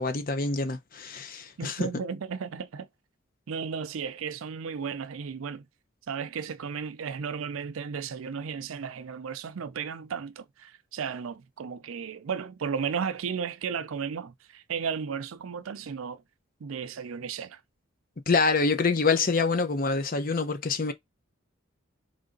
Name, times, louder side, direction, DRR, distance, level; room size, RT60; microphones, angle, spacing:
voice 1, 0.0-1.9 18.3-20.9, left 4 dB, 45° left, 0.7 m, -26 dB
voice 2, 1.6-2.9 3.5-5.6 6.1-16.2 16.6-17.6, right 6 dB, 80° right, 0.5 m, -34 dB
3.8 x 3.2 x 3.8 m
head